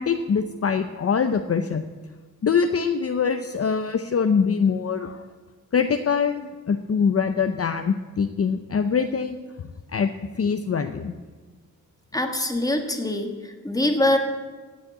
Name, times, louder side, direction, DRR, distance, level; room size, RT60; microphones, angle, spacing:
voice 1, 0.0-1.8 2.4-5.2 5.7-9.4 9.9-10.1 10.4-11.1, left 6 dB, 45° left, 8 dB, 0.6 m, -23 dB
voice 2, 12.1-14.2, left 1 dB, 10° left, 5 dB, 1.6 m, -24 dB
16.5 x 6.5 x 9.2 m, 1.4 s
wide cardioid pair, 135°, 34 cm